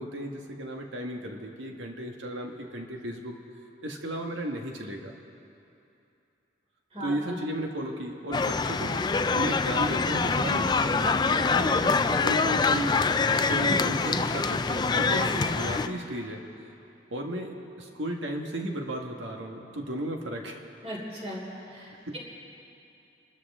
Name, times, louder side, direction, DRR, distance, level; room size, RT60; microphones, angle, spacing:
voice 1, 0.0-3.4 3.8-5.1 7.0-9.0 9.3-13.0 13.5-16.4 17.1-20.6 22.0-22.2, right 1 dB, 85° right, 2 dB, 1.6 m, -34 dB
sound 1, 8.3-15.9, left 4 dB, 20° left, 0.3 m, -25 dB
voice 2, 15.1-15.5 20.8-21.4 21.7-22.2, equal, 30° right, -3 dB, 3.3 m, -36 dB
27.5 x 13.0 x 3.6 m, 2.7 s
head